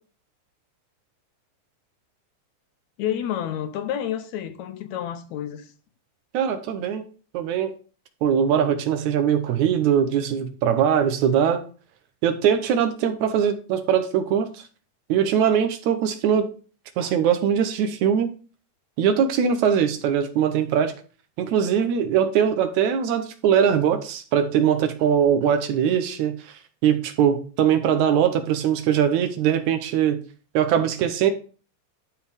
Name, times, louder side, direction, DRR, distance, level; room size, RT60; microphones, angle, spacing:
voice 1, 3.0-5.7, left 10 dB, 75° left, 2.0 m, -29 dB
voice 2, 6.3-7.0 7.3-7.7 8.2-11.6 12.2-14.6 15.1-16.5 17.0-18.3 19.0-20.9 21.4-26.5 26.8-30.2 30.5-31.3, right 8 dB, 75° right, 2.2 m, -21 dB
12.0 x 4.6 x 3.5 m
omnidirectional pair, 3.5 m